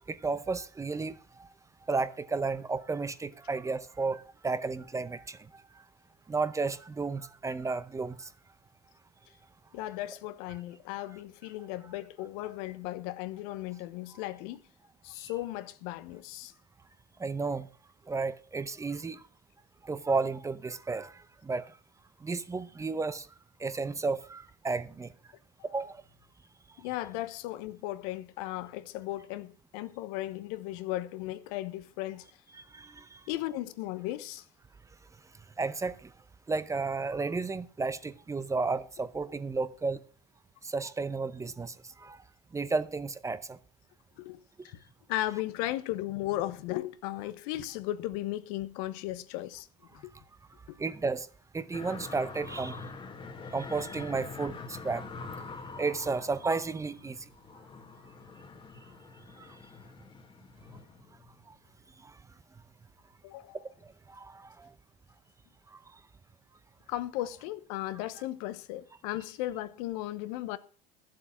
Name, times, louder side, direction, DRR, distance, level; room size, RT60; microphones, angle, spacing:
voice 1, 0.1-1.2 1.9-5.4 6.3-8.3 17.2-17.7 18.1-19.2 19.8-21.7 22.2-23.3 23.6-25.1 25.7-26.0 32.5-33.2 35.6-35.9 36.5-40.0 40.6-42.2 42.5-43.6 50.8-51.3 51.5-52.8 53.5-55.0 55.8-57.2 59.4-59.5 64.1-64.7, right 4 dB, 15° right, 0.7 m, -33 dB
voice 2, 9.7-14.6 15.0-16.5 26.8-32.3 33.3-34.4 44.2-44.8 45.1-49.7 49.9-50.1 50.7-50.8 63.2-63.6 66.9-70.6, left 15 dB, 65° left, 0.9 m, -36 dB
sound 1, 51.7-61.6 62.0-62.1, left 4 dB, 25° left, 1.6 m, -45 dB
12.0 x 7.6 x 5.9 m
hypercardioid pair, 95°, 20 cm